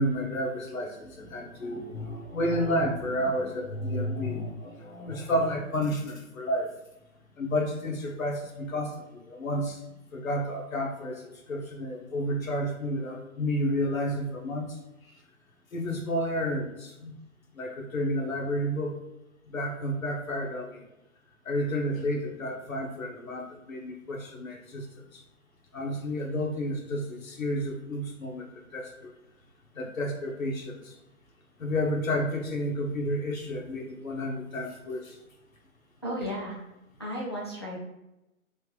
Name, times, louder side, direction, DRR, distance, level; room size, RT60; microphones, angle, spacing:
voice 1, 0.0-6.7 7.4-9.8 10.1-14.8 15.7-17.1 17.6-18.9 19.5-20.8 21.4-24.9 25.1-25.2 25.7-28.5 28.7-29.1 29.7-30.9 31.6-35.2, equal, 75° left, 0 dB, 1.0 m, -31 dB
voice 2, 36.0-36.6 37.0-37.8, equal, 20° left, -5 dB, 0.3 m, -34 dB
3.3 x 2.6 x 3.1 m, 0.94 s
figure-of-eight pair, 130°, 41 cm